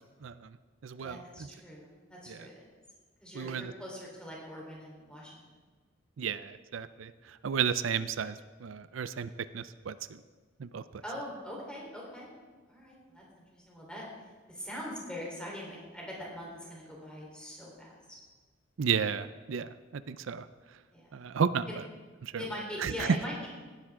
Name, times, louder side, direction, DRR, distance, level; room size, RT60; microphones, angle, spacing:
voice 1, 0.2-0.6 0.8-1.5 2.3-2.5 3.3-3.7 6.2-8.3 8.6-10.2 10.6-11.0 18.8-20.5 21.1-21.7 22.2-22.5 22.8-23.2, right 6 dB, 90° right, 14 dB, 0.5 m, -33 dB
voice 2, 1.0-2.6 3.2-5.4 11.0-12.3 12.7-14.0 14.5-18.2 20.9-21.2 21.7-21.8 22.4-23.3, equal, 5° left, -4 dB, 3.9 m, -42 dB
16.5 x 11.0 x 3.7 m, 1.4 s
head